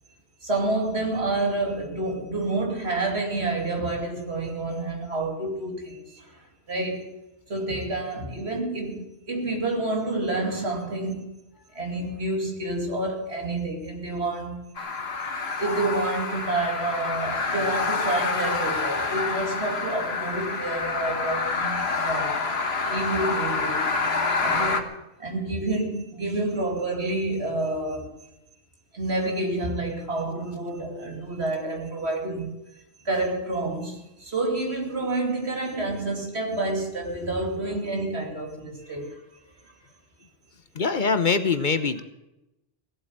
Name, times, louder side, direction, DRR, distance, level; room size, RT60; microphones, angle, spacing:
voice 1, 0.4-7.2 7.5-11.3 11.7-14.7 15.6-22.4 22.9-23.8 24.4-24.9 25.2-28.2 28.9-39.2, right 2 dB, 80° right, 3.1 m, -29 dB
sound 1, 14.8-24.8, left 4 dB, 70° left, 1.7 m, -27 dB
voice 2, 40.8-42.0, left 5 dB, 50° left, 1.1 m, -23 dB
17.0 x 8.0 x 9.9 m
omnidirectional pair, 1.1 m